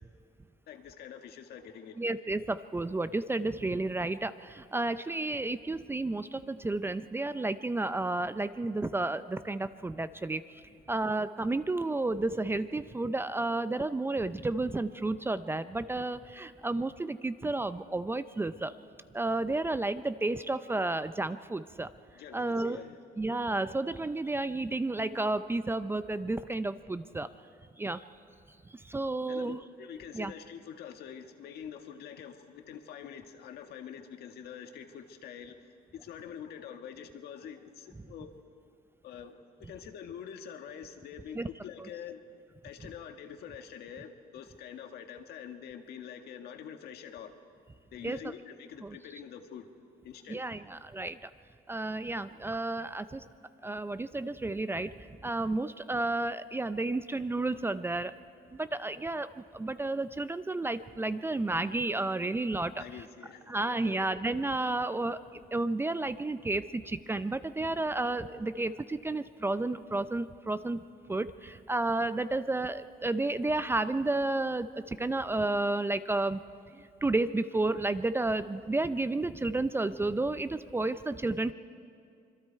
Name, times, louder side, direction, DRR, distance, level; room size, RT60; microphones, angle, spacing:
voice 1, 0.7-2.0 22.2-23.0 29.3-35.5 35.9-38.3 39.0-42.2 42.6-47.3 47.9-49.7 50.0-50.4 62.8-63.5 63.8-64.0, left 8 dB, 70° left, 5 dB, 1.7 m, -45 dB
voice 2, 2.0-10.4 10.9-18.7 19.1-21.9 22.3-22.8 23.2-27.3 27.8-28.0 28.8-29.6 30.1-30.3 41.3-41.5 41.8-41.9 48.0-48.3 48.8-49.0 50.3-51.3 51.7-53.3 53.6-54.9 55.2-58.1 58.5-63.0 63.5-70.8 71.1-76.4 77.0-81.5, right 2 dB, 15° right, 12 dB, 0.5 m, -31 dB
25.5 x 23.0 x 4.6 m, 2.3 s
cardioid pair, 110°, 17 cm